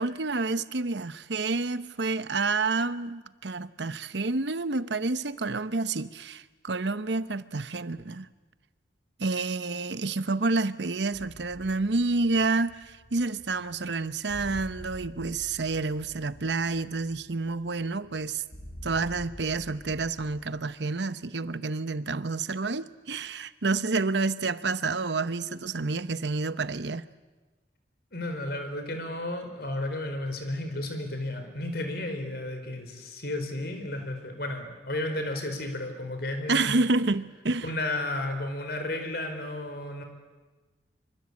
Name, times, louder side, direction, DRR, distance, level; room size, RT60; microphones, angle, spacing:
voice 1, 0.0-8.3 9.2-18.4 18.8-27.0 36.5-37.7, right 3 dB, 70° right, 0.9 m, -29 dB
sound 1, 11.1-20.5, equal, 35° left, 7.7 m, -47 dB
voice 2, 28.1-36.8 37.6-40.0, left 1 dB, 55° left, 4.5 m, -33 dB
26.0 x 25.0 x 8.6 m
head